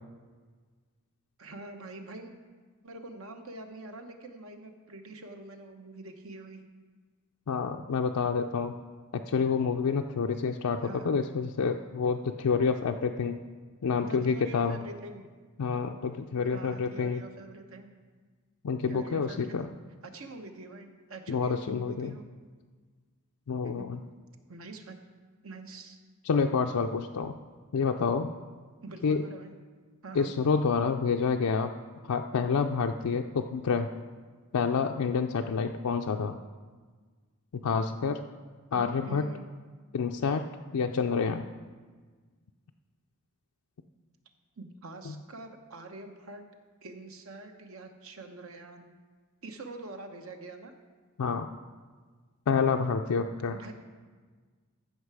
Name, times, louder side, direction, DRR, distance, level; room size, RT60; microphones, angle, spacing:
voice 1, 1.4-2.3 2.8-6.6 10.8-11.1 14.0-15.3 16.5-17.9 18.9-19.5 20.0-22.3 23.6-23.9 24.5-25.0 25.4-26.0 28.8-29.5 30.0-30.3 38.7-39.4 44.6-46.4 46.8-48.9 49.4-50.7 53.5-53.7, right 2 dB, 65° right, 5 dB, 1.0 m, -45 dB
voice 2, 7.5-8.7 9.3-13.4 13.8-14.8 15.6-17.2 18.6-19.7 21.3-22.2 23.5-24.0 26.2-27.4 27.7-28.3 29.0-29.2 30.2-31.7 32.1-33.9 34.5-36.4 37.6-38.2 38.7-39.3 39.9-40.4 40.7-41.5 45.1-45.2 51.2-51.5 52.5-53.5, left 5 dB, 85° left, 3 dB, 0.4 m, -28 dB
15.0 x 5.8 x 4.7 m, 1.5 s
head